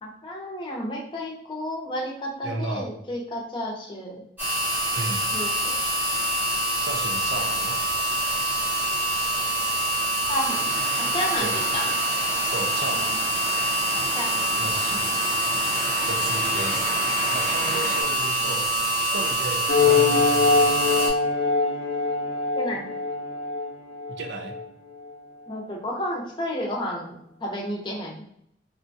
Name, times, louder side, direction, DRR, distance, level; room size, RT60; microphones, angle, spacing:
voice 1, 0.0-4.2 5.3-5.8 10.3-10.7 11.0-11.9 13.0-13.1 14.1-15.0 22.6-22.8 25.5-28.2, left 1 dB, 25° left, -2 dB, 0.7 m, -32 dB
voice 2, 2.4-2.9 4.9-5.3 6.8-7.8 11.4-11.6 12.5-13.2 14.6-15.1 16.0-16.9 17.3-18.7 19.0-21.1 24.2-24.6, right 2 dB, 80° right, 4 dB, 0.5 m, -34 dB
sound 1, 4.4-21.1, right 1 dB, 10° right, 0.8 m, -25 dB
sound 2, 10.5-18.0, right 1 dB, 45° right, 0.7 m, -35 dB
sound 3, 19.7-24.6, left 4 dB, 65° left, 0.5 m, -23 dB
3.7 x 2.2 x 2.7 m, 0.73 s
head